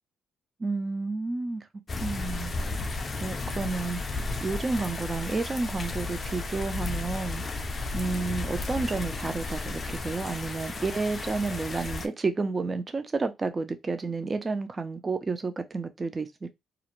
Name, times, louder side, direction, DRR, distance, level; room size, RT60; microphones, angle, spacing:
voice 1, 0.6-1.7 2.0-2.6 3.2-4.0 4.4-7.4 7.9-16.5, right 3 dB, 30° right, 0.4 m, -31 dB
sound 1, 1.9-12.1, left 3 dB, 35° left, 0.4 m, -33 dB
2.4 x 2.1 x 2.9 m
cardioid pair, 90°, 0 cm